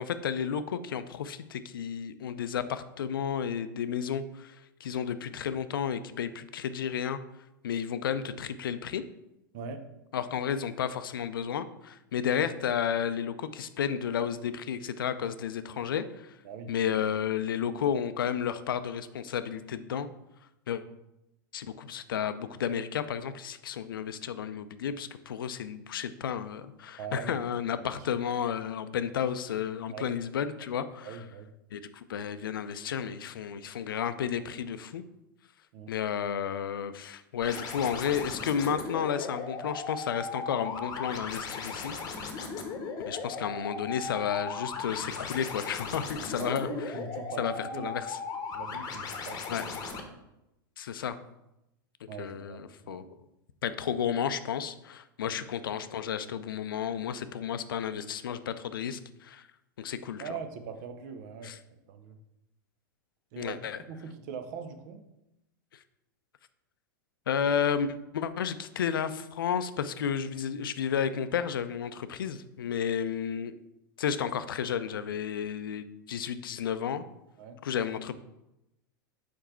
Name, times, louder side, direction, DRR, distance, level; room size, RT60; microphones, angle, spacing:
voice 1, 0.0-7.2 7.6-9.0 10.1-16.4 16.7-20.1 20.7-20.8 21.5-31.2 31.7-35.0 35.9-42.3 43.1-46.7 47.4-48.2 49.5-49.6 50.8-51.2 52.2-53.0 53.6-59.5 59.8-60.3 61.4-61.6 63.4-63.8 65.7-65.8 67.3-73.5 74.0-77.0 77.6-78.1, left 8 dB, 80° left, 12 dB, 0.4 m, -32 dB
voice 2, 27.0-27.4 29.9-30.2 31.0-31.5 35.7-35.9 46.4-48.0 48.5-50.2 52.1-53.0 55.3-55.4 60.2-61.6 61.9-62.2 63.3-65.0 77.4-77.6, right 5 dB, 55° right, 8 dB, 0.8 m, -41 dB
sound 1, 37.4-50.0, left 4 dB, 35° left, 0.9 m, -37 dB
4.8 x 4.5 x 4.4 m, 0.90 s
hypercardioid pair, 100°, 11 cm